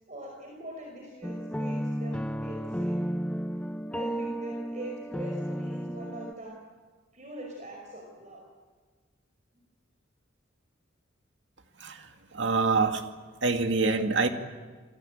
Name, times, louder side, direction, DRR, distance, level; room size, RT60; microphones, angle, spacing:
voice 1, 0.1-3.0 3.9-6.6 7.1-8.4, right 1 dB, 40° right, 0 dB, 5.3 m, -43 dB
sound 1, 1.2-6.3, equal, 5° left, 0.7 m, -33 dB
voice 2, 11.8-13.0 13.4-14.3, right 4 dB, 65° right, 5 dB, 2.3 m, -26 dB
28.5 x 23.0 x 8.8 m, 1.4 s
head